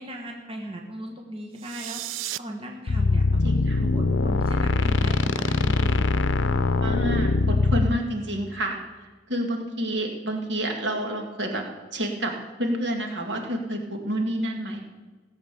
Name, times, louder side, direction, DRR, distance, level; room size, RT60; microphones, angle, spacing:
voice 1, 0.0-2.0 2.4-6.0, right 1 dB, 30° right, 0 dB, 1.5 m, -37 dB
sound 1, 1.5-2.4, right 14 dB, 85° right, 0.4 m, -34 dB
sound 2, 2.9-8.0, left 3 dB, 75° left, 0.6 m, -22 dB
voice 2, 3.4-3.8 6.8-8.8 9.3-11.6 11.9-12.3 12.6-14.8, right 1 dB, 65° right, 2 dB, 2.1 m, -28 dB
16.5 x 7.9 x 6.9 m, 1.3 s
head